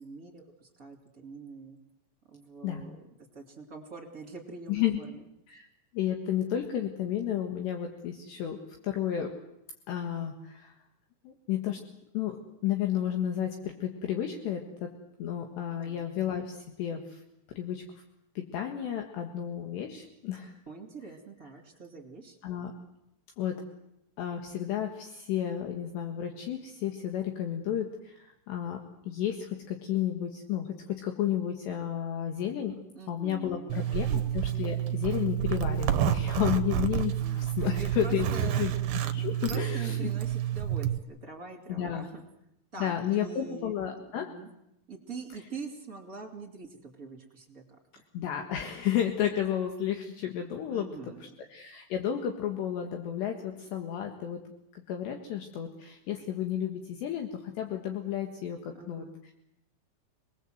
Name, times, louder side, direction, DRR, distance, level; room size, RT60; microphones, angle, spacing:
voice 1, 0.0-1.8 2.3-3.0 3.3-5.2 15.8-16.1 20.7-22.4 32.9-34.3 37.2-38.8 39.2-42.2 42.7-43.7 44.1-44.5 44.9-48.0 50.7-51.3 58.7-59.3, right 4 dB, 25° right, 2 dB, 2.1 m, -44 dB
voice 2, 4.7-5.0 5.5-5.7 5.9-8.6 8.8-9.3 9.9-10.7 11.3-11.8 12.1-14.9 15.2-17.2 17.6-18.0 18.4-20.6 22.4-22.7 23.4-23.6 24.2-32.8 33.1-38.3 38.6-38.7 39.1-40.1 41.7-42.1 42.8-44.3 48.1-50.9 51.5-54.4 54.7-59.1, left 10 dB, 70° left, 4 dB, 3.5 m, -32 dB
Zipper (clothing), 33.7-41.0, right 11 dB, 70° right, 2.3 m, -29 dB
27.5 x 20.0 x 7.9 m, 0.82 s
omnidirectional pair, 5.6 m